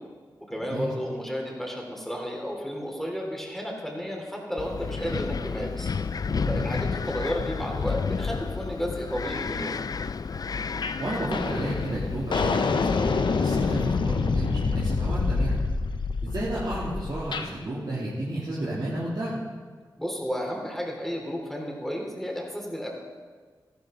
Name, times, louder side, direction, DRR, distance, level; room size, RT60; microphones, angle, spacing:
voice 1, 0.5-5.9 6.5-9.8 20.0-22.9, equal, 5° left, -1 dB, 3.6 m, -32 dB
Wind, 4.6-12.7, left 5 dB, 50° left, 0.4 m, -31 dB
voice 2, 6.3-6.8 11.0-13.1 13.4-15.6 16.2-19.4, right 1 dB, 60° right, -8 dB, 2.9 m, -32 dB
sound 1, 10.8-11.0 11.3-17.5, left 4 dB, 75° left, 0.8 m, -26 dB
13.5 x 12.5 x 3.9 m, 1.5 s
cardioid pair, 45°, 8 cm